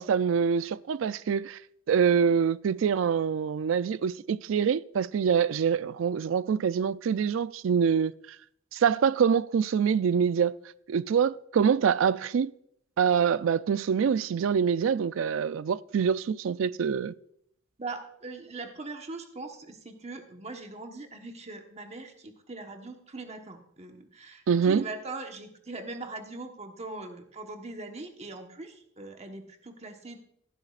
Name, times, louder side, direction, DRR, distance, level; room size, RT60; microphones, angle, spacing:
voice 1, 0.0-1.6 1.9-8.1 8.7-10.5 10.9-12.5 13.0-17.1 24.5-24.8, right 7 dB, 70° right, 0.3 m, -25 dB
voice 2, 17.8-30.2, right 3 dB, 35° right, 1.2 m, -41 dB
14.0 x 12.0 x 2.5 m
head